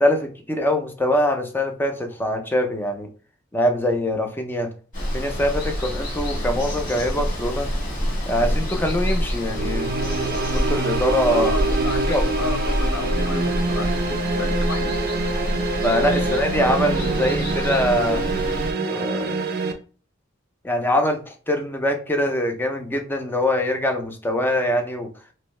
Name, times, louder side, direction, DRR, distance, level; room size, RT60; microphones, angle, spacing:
voice 1, 0.0-3.1 3.5-4.7 5.1-7.7 8.3-11.5 12.1-12.3 15.8-18.2 18.9-19.4 20.6-25.1, left 1 dB, 10° left, 0.5 m, -23 dB
Water, 4.9-18.7, equal, 40° left, 1.7 m, -27 dB
sound 1, 9.5-19.7, right 3 dB, 50° right, 0.5 m, -25 dB
voice 2, 11.3-14.9, left 3 dB, 65° left, 0.7 m, -32 dB
3.0 x 2.7 x 3.1 m
head